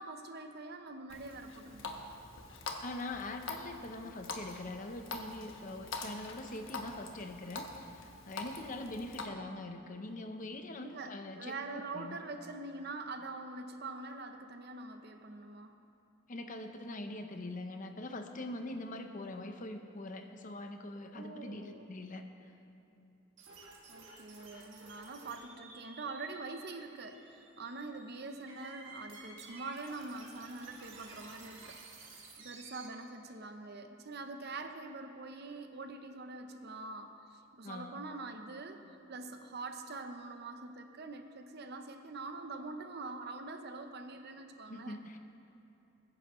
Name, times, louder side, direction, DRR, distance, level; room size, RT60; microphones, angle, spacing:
voice 1, 0.0-2.1 10.8-11.1 11.4-15.8 21.1-21.9 23.9-31.8 32.4-38.8 39.1-45.0, right 3 dB, 55° right, 6 dB, 0.8 m, -44 dB
Water tap faucet, 1.1-9.3, left 3 dB, 80° left, 1.1 m, -45 dB
voice 2, 2.8-12.2 16.3-22.3 37.6-38.0 44.7-45.2, left 2 dB, 40° left, 6 dB, 0.8 m, -43 dB
sound 1, 23.4-32.9, right 3 dB, 70° right, 2.0 m, -53 dB
21.0 x 10.0 x 3.1 m, 2.8 s
head